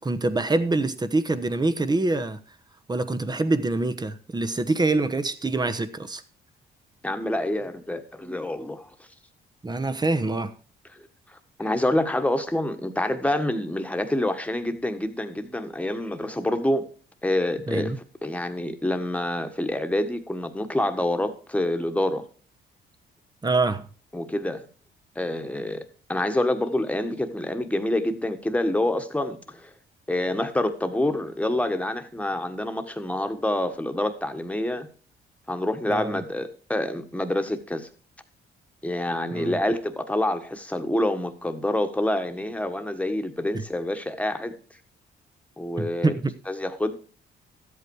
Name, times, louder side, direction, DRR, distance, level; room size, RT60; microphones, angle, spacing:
voice 1, 0.0-2.4 2.9-6.2 9.6-10.5 17.7-18.0 23.4-23.9 35.9-36.2 39.3-39.6 45.8-46.3, right 2 dB, 20° right, 1.1 m, -25 dB
voice 2, 7.0-8.9 10.9-16.8 17.2-17.9 18.2-22.3 24.1-24.7 25.1-29.7 30.1-34.9 35.5-37.9 38.8-44.5 45.6-46.2 46.5-47.0, left 1 dB, 5° left, 1.5 m, -27 dB
13.0 x 8.4 x 4.8 m
cardioid pair, 90°, 20 cm